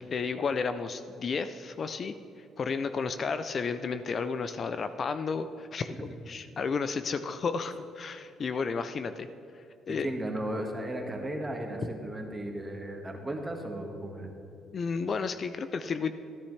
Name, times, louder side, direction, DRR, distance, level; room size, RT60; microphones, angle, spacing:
voice 1, 0.0-2.1 2.6-9.3 9.5-10.1 14.7-16.1, left 5 dB, 45° left, 10 dB, 0.4 m, -32 dB
voice 2, 10.0-14.3, right 1 dB, 15° right, 2 dB, 1.5 m, -35 dB
13.0 x 10.0 x 3.2 m, 2.8 s
cardioid pair, 95°, 0 cm